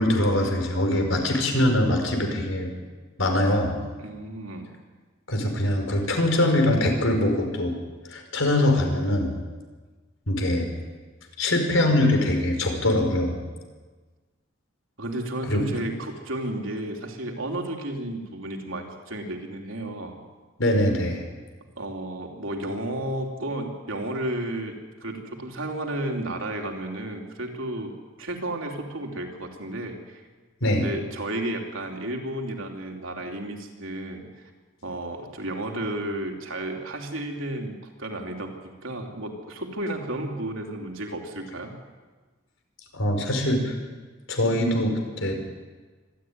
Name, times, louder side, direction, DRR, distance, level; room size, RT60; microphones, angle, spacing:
voice 1, 0.0-2.7 3.2-3.8 5.3-7.8 8.1-9.4 10.3-10.7 11.4-13.4 15.5-15.8 20.6-21.2 30.6-30.9 42.9-43.7 44.3-45.4, left 1 dB, 90° left, 4 dB, 4.8 m, -23 dB
voice 2, 4.0-4.7 15.0-20.2 21.8-30.2 30.7-34.3 34.8-41.8, right 1 dB, 90° right, 2 dB, 3.5 m, -32 dB
25.0 x 12.5 x 9.7 m, 1.4 s
head